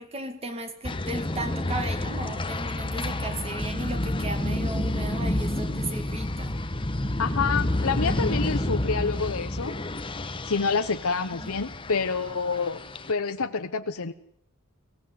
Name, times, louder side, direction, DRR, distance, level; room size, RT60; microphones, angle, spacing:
voice 1, 0.0-6.6 11.4-11.5, right 2 dB, 25° right, 7 dB, 2.0 m, -36 dB
sound 1, 0.8-13.1, left 1 dB, 25° left, 1.1 m, -29 dB
voice 2, 7.2-9.8 10.4-12.8 13.1-14.1, left 5 dB, 65° left, 8 dB, 0.9 m, -27 dB
23.0 x 16.5 x 9.5 m, 0.73 s
head